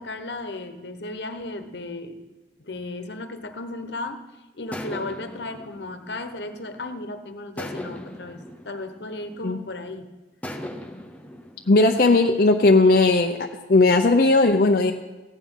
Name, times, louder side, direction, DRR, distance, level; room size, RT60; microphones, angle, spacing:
voice 1, 0.0-2.2 2.6-4.2 4.6-10.1, left 2 dB, 75° left, 8 dB, 1.1 m, -35 dB
sound 1, 4.7-7.0 7.6-9.7 10.4-12.7, left 1 dB, 10° left, 0.8 m, -39 dB
voice 2, 11.7-14.9, left 3 dB, 55° left, 4 dB, 0.6 m, -17 dB
15.5 x 9.3 x 5.5 m, 1.2 s
head